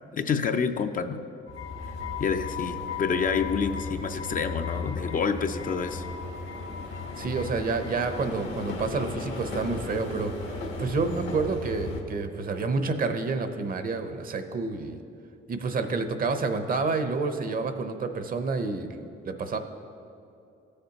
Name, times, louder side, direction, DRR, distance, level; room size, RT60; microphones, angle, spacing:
voice 1, 0.1-1.2 2.2-6.0, left 6 dB, 45° left, 8 dB, 0.5 m, -28 dB
sound 1, 1.5-12.0, left 4 dB, 75° left, 1.2 m, -35 dB
voice 2, 7.2-15.0 15.5-19.6, right 4 dB, 45° right, 8 dB, 0.7 m, -29 dB
15.0 x 6.6 x 2.9 m, 2.7 s
cardioid pair, 90°, 20 cm